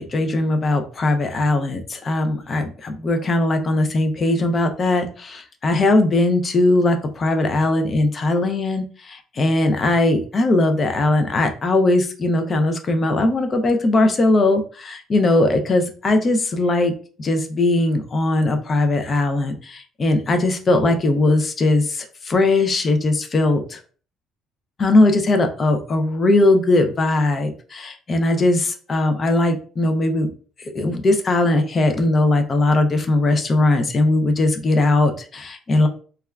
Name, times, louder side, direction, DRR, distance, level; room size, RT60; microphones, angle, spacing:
voice 1, 0.0-16.9 17.2-23.8 24.8-30.3 30.7-35.9, left 2 dB, 25° left, 6 dB, 0.4 m, -19 dB
3.2 x 2.3 x 2.2 m, 0.41 s
cardioid pair, 150°, 0 cm